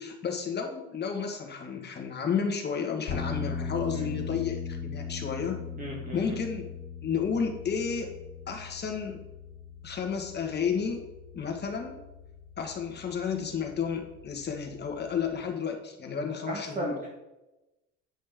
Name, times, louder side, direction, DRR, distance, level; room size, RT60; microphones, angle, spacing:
voice 1, 0.0-5.6 6.1-6.7 7.0-8.1 8.5-9.2 9.8-11.1 11.3-12.0 12.6-17.0, left 6 dB, 35° left, 4 dB, 1.4 m, -32 dB
sound 1, 3.1-15.4, left 5 dB, 90° left, 1.8 m, -40 dB
voice 2, 5.8-6.3 16.5-17.1, right 1 dB, 25° right, -2 dB, 1.3 m, -35 dB
9.1 x 5.3 x 3.5 m, 0.99 s
cardioid pair, 110°, 29 cm